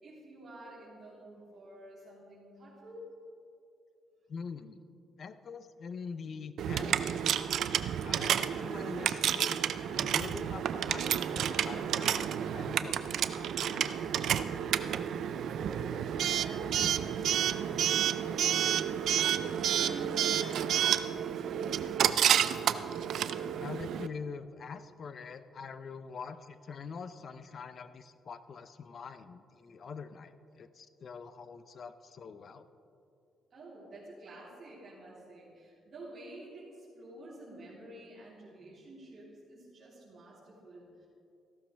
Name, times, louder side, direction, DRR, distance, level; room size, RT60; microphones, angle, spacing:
voice 1, 0.0-3.2 15.3-22.0 33.5-41.1, right 1 dB, 50° right, -10 dB, 3.5 m, -50 dB
voice 2, 4.3-4.8 5.2-7.2 8.0-9.6 9.9-14.0 23.5-32.6, left 5 dB, 50° left, 12 dB, 0.6 m, -44 dB
Coin (dropping) / Alarm, 6.6-24.1, right 9 dB, 70° right, 0.4 m, -30 dB
14.5 x 13.0 x 3.4 m, 2.6 s
cardioid pair, 90°, 0 cm